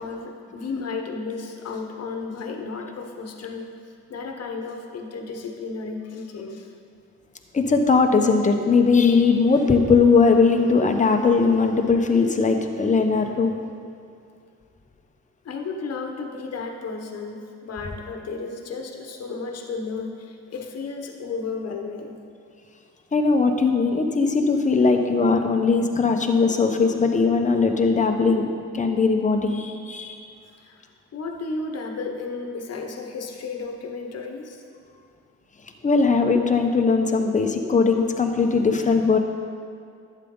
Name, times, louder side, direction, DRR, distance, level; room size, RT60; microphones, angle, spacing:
voice 1, 0.0-3.7 4.1-6.7 15.4-22.2 30.5-30.8 31.1-34.6, left 4 dB, 55° left, 3 dB, 1.2 m, -33 dB
voice 2, 7.5-13.6 23.1-28.5 28.7-30.2 35.8-39.2, left 4 dB, 25° left, 4 dB, 1.0 m, -19 dB
11.5 x 8.4 x 3.9 m, 2.3 s
cardioid pair, 90°, 30 cm